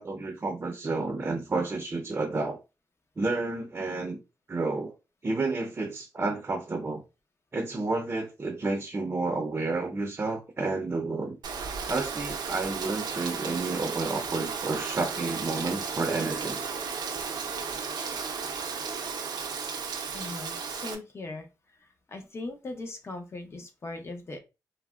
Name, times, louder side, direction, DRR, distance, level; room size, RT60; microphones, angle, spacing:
voice 1, 0.0-2.6 3.2-4.2 4.5-5.0 5.2-7.0 7.5-11.4 11.9-16.6, right 3 dB, 30° right, 0.5 m, -30 dB
Rain, 11.4-20.9, right 5 dB, 80° right, 0.5 m, -34 dB
voice 2, 20.1-24.4, left 2 dB, 40° left, 0.7 m, -40 dB
3.4 x 2.0 x 2.3 m
cardioid pair, 90°, 7 cm